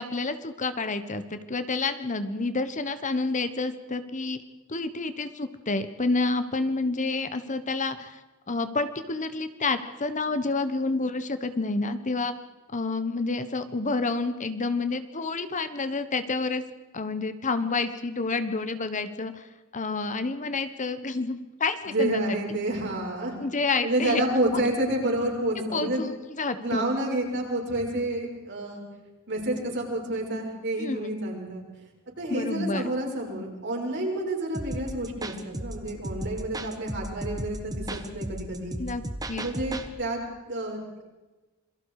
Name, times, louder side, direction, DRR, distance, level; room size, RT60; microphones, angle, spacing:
voice 1, 0.0-4.4 4.7-8.2 8.5-12.3 12.7-16.6 16.9-19.4 19.7-22.4 23.4-24.2 25.7-26.9 30.8-31.1 32.3-32.9 38.8-39.0 39.3-39.4, left 3 dB, 35° left, 11 dB, 1.2 m, -29 dB
voice 2, 21.9-23.4 23.8-26.0 26.6-28.8 29.3-31.6 32.2-38.7 39.3-40.2 40.5-40.8, right 1 dB, 55° right, 0 dB, 6.3 m, -29 dB
sound 1, 34.5-39.9, right 1 dB, 15° right, 1.5 m, -35 dB
27.0 x 23.0 x 4.9 m, 1.2 s
head